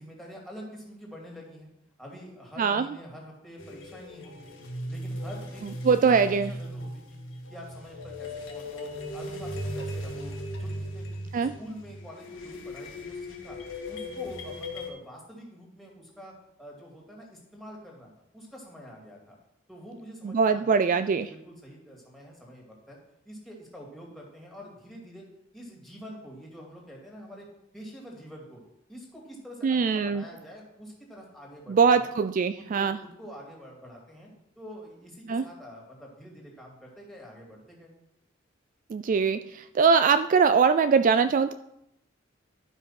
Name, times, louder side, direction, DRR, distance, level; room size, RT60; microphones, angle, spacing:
voice 1, 0.0-1.7 2.0-4.6 4.9-7.2 7.5-13.6 13.9-19.4 19.7-23.0 23.2-25.3 25.5-27.5 27.7-28.6 28.9-32.1 32.6-34.3 34.6-37.9, equal, ahead, -2 dB, 2.6 m, -46 dB
sound 1, 3.6-14.9, left 1 dB, 75° left, 1.9 m, -37 dB
voice 2, 5.8-6.5 11.3-11.5 20.2-21.3 29.6-30.2 31.7-33.0 35.3-35.4 38.9-41.5, right 5 dB, 40° right, 11 dB, 0.3 m, -22 dB
12.0 x 5.5 x 5.8 m, 0.81 s
head